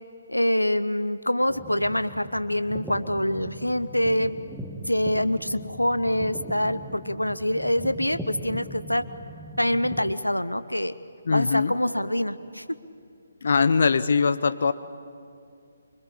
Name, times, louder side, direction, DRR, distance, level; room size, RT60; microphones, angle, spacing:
voice 1, 0.3-4.4 4.9-9.0 9.6-10.9 11.3-12.6, left 1 dB, 85° left, 14 dB, 0.8 m, -25 dB
sound 1, 1.5-10.1, equal, 5° right, 1.4 m, -40 dB
voice 2, 11.3-11.7 13.4-14.7, left 5 dB, 55° left, 13 dB, 0.9 m, -21 dB
25.0 x 25.0 x 8.6 m, 2.4 s
figure-of-eight pair, 140°, 0 cm